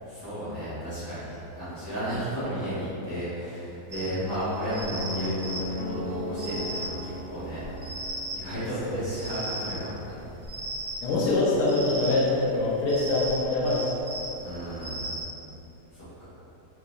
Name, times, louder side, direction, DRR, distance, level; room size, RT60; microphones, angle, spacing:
voice 1, 0.0-7.6 8.3-10.2 14.4-15.0 15.9-16.2, equal, 15° left, -13 dB, 1.3 m, -33 dB
sound 1, 3.9-15.2, right 1 dB, 60° right, 0.4 m, -37 dB
sound 2, 4.9-9.0, left 2 dB, 70° left, 0.6 m, -37 dB
voice 2, 11.0-13.9, left 2 dB, 85° left, -5 dB, 1.3 m, -24 dB
3.8 x 3.0 x 2.4 m, 2.9 s
omnidirectional pair, 1.7 m